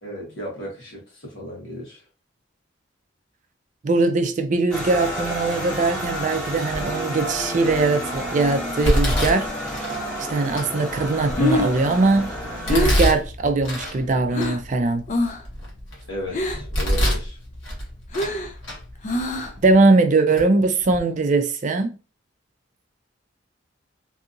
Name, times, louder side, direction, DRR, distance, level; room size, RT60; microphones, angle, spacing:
voice 1, 0.0-2.0 16.1-17.4, equal, 70° left, 1.2 m, -35 dB
voice 2, 3.8-9.5 10.3-12.3 12.7-15.0 19.6-21.9, right 3 dB, 40° right, 0.4 m, -20 dB
sound 1, 4.7-13.0, equal, 5° left, 0.9 m, -30 dB
Domestic sounds home sounds, 6.7-7.1 7.7-8.1 8.8-10.0 10.6-10.7 11.2-12.0 12.7-14.0 14.4-14.5 15.1-16.0 16.5-17.3 17.6-18.4 18.6-18.8 19.6-19.7 20.4-20.5 20.8-21.0, equal, 90° left, 1.2 m, -24 dB
Breathing, 11.1-14.7 15.1-15.5 15.8-16.8 17.2-19.7, left 2 dB, 40° left, 0.4 m, -26 dB
2.7 x 2.5 x 2.6 m
head